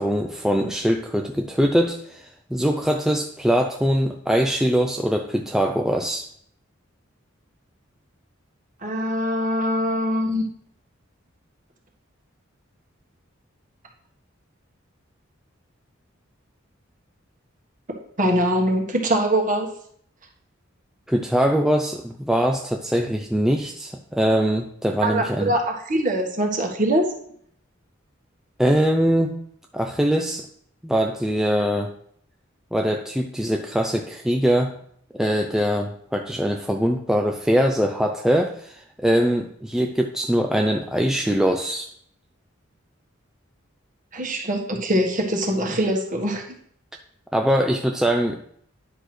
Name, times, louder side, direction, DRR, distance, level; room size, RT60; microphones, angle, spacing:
voice 1, 0.0-6.3 21.1-25.5 28.6-29.4 29.7-30.5 30.8-31.9 32.7-34.7 35.2-41.9 47.3-48.4, equal, ahead, 2 dB, 0.4 m, -22 dB
voice 2, 8.8-10.4 18.2-19.7 25.0-27.0 44.1-46.4, equal, 40° right, 2 dB, 1.5 m, -23 dB
10.0 x 6.0 x 3.3 m, 0.65 s
head